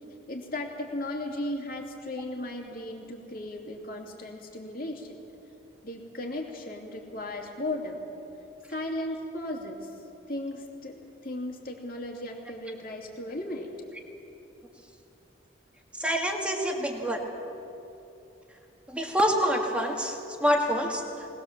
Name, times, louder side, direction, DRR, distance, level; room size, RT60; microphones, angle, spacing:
voice 1, 0.3-5.2 5.8-8.1 8.7-9.9 10.3-13.7 21.1-21.3, left 1 dB, 45° left, 1 dB, 2.7 m, -36 dB
voice 2, 16.0-17.3 18.9-21.0, equal, 5° right, 1 dB, 1.9 m, -26 dB
20.0 x 20.0 x 7.4 m, 2.9 s
head